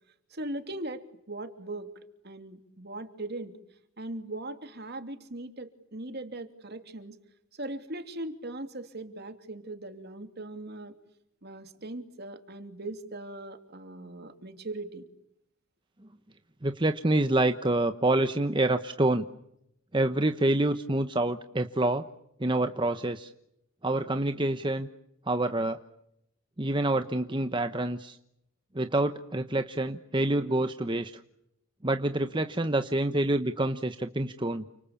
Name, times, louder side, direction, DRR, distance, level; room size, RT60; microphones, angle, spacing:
voice 1, 0.3-1.9 2.2-3.6 4.0-7.2 7.5-10.9 11.4-15.0, right 2 dB, 50° right, 8 dB, 2.9 m, -39 dB
voice 2, 16.6-19.3 19.9-22.0 22.4-23.3 23.8-24.9 25.3-25.8 26.6-28.2 28.7-31.2 31.8-34.6, right 2 dB, 20° right, 8 dB, 1.0 m, -27 dB
30.0 x 27.0 x 7.3 m, 0.79 s
head